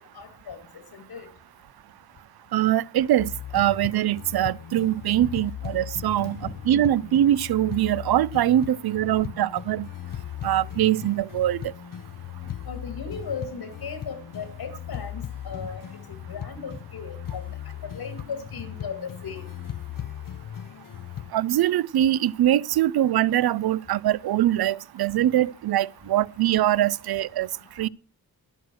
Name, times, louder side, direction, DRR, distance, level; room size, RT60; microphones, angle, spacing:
voice 1, 0.1-1.3 5.2-5.3 6.2-6.5 12.6-15.8 16.1-17.4 17.8-19.5, left 5 dB, 80° left, 2.2 m, -37 dB
voice 2, 2.5-6.4 6.7-9.9 10.4-11.6 21.3-27.5 27.8-27.9, right 12 dB, 80° right, 0.5 m, -23 dB
sound 1, 3.2-21.3, left 10 dB, 60° left, 0.6 m, -38 dB
11.0 x 9.1 x 6.2 m
wide cardioid pair, 80°, 37 cm